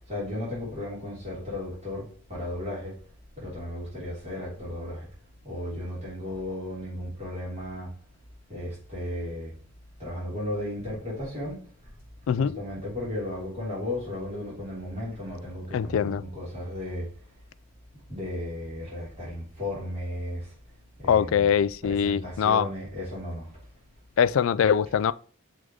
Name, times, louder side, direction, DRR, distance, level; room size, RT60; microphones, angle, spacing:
voice 1, 0.1-3.0 3.3-5.1 5.4-7.9 8.5-9.5 10.0-11.7 12.4-17.1 18.1-20.5 21.0-21.5 21.8-23.6, left 1 dB, 30° right, 3.4 m, -35 dB
voice 2, 12.3-12.6 15.7-16.2 21.1-22.7 24.2-25.1, left 8 dB, 80° left, 0.3 m, -23 dB
6.4 x 3.7 x 4.8 m
head